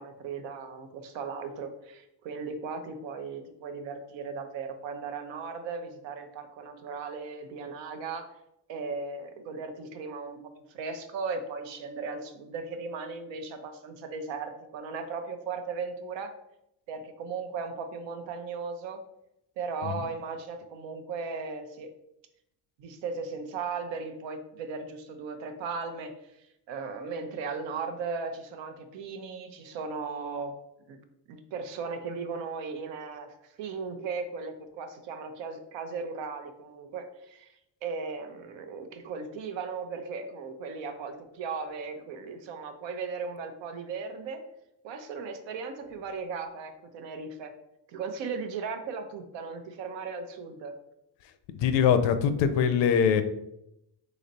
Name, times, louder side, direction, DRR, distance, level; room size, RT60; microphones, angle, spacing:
voice 1, 0.0-8.3 8.7-10.4 10.7-16.3 16.9-19.0 19.6-21.9 22.8-26.1 26.7-30.5 30.9-31.0 31.3-37.5 37.8-44.4 44.8-47.5 47.9-50.7, right 4 dB, 90° right, 7 dB, 0.8 m, -37 dB
voice 2, 51.5-53.2, left 7 dB, 80° left, 10 dB, 0.6 m, -23 dB
4.0 x 3.1 x 4.0 m, 0.83 s
cardioid pair, 105°, 43 cm